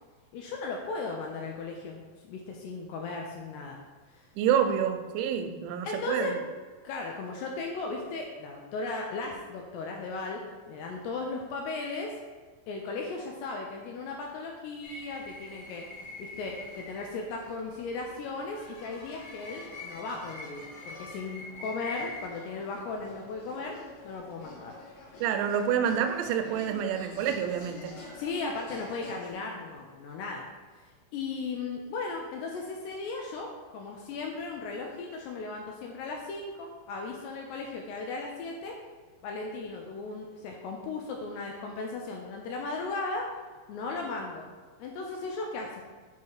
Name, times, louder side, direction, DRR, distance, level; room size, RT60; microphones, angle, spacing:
voice 1, 0.3-2.0 2.3-3.8 4.1-4.3 5.8-6.4 6.8-12.1 12.7-15.9 16.2-23.8 24.0-24.8 25.1-25.2 28.1-30.5 31.1-38.8 39.2-43.3 43.7-44.4 44.8-45.8, left 3 dB, 85° left, 0 dB, 2.4 m, -36 dB
voice 2, 4.4-6.4 25.2-28.0, right 8 dB, 85° right, 6 dB, 2.8 m, -28 dB
sound 1, 14.8-29.3, left 2 dB, 70° left, 2.0 m, -46 dB
7.5 x 2.8 x 4.7 m, 1.4 s
omnidirectional pair, 5.2 m